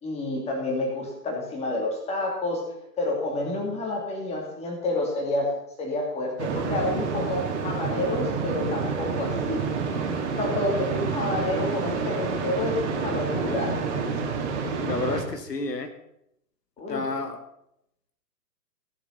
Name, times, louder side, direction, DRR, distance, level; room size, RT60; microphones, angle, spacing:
voice 1, 0.0-9.6 9.9-10.0 10.4-14.1 16.8-17.1, left 2 dB, 15° left, -1 dB, 2.7 m, -29 dB
sound 1, 6.4-15.2, right 5 dB, 40° right, 2.4 m, -28 dB
voice 2, 14.8-15.9 16.9-17.4, left 3 dB, 75° left, 7 dB, 1.5 m, -30 dB
16.0 x 7.4 x 5.7 m, 0.78 s
figure-of-eight pair, 125°, 49 cm